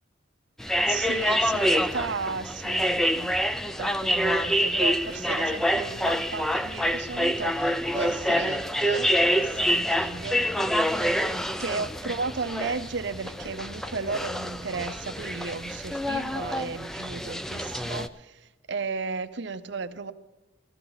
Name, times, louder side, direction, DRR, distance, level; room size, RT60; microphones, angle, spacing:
sound 1, 0.6-18.1, equal, ahead, 0.3 m, -27 dB
voice 1, 0.9-3.4 3.8-10.4 11.6-20.1, right 4 dB, 60° right, 0.6 m, -34 dB
14.5 x 14.5 x 4.0 m
head